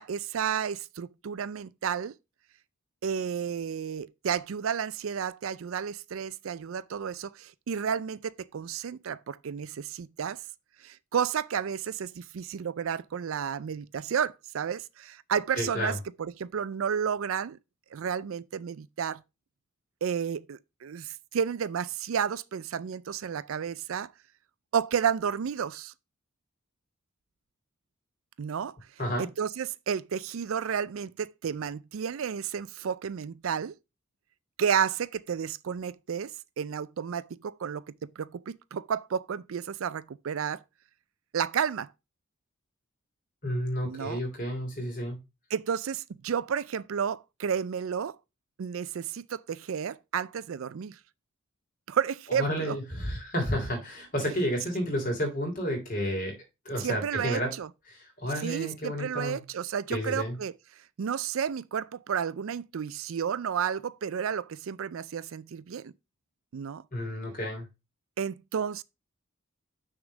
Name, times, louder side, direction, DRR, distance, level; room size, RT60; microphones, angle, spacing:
voice 1, 0.0-2.1 3.0-10.4 10.8-17.6 17.9-19.2 20.0-24.1 24.7-25.9 28.4-28.8 29.2-33.7 34.6-36.3 36.6-40.6 41.3-41.9 43.8-44.2 45.5-48.2 48.6-51.0 51.9-52.8 56.8-57.7 58.4-60.5 61.0-65.9 66.5-66.8 68.2-68.8, right 7 dB, 75° right, 0.4 m, -32 dB
voice 2, 15.6-16.0 29.0-29.3 43.4-45.2 52.4-56.4 56.6-57.5 57.9-59.4 59.9-60.4 66.9-67.7, equal, 40° left, 2.9 m, -31 dB
6.3 x 3.6 x 6.1 m
head